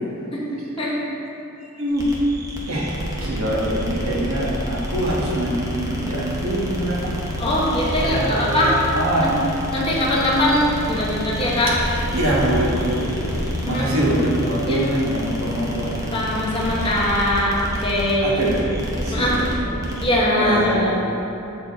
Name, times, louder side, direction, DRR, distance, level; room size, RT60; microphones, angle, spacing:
sound 1, 1.9-20.2, equal, 15° right, 0.8 m, -29 dB
voice 1, 2.7-7.1 7.9-9.3 12.1-13.4 13.6-16.0 18.2-18.7 19.0-20.1 20.4-20.9, right 1 dB, 70° right, -4 dB, 1.3 m, -24 dB
voice 2, 7.4-8.8 9.2-9.3 9.7-11.7 13.6-13.9 14.7-14.8 16.1-18.5 19.1-19.4 20.0-20.9, left 1 dB, 25° left, -5 dB, 1.1 m, -21 dB
7.4 x 4.3 x 4.1 m, 2.9 s
head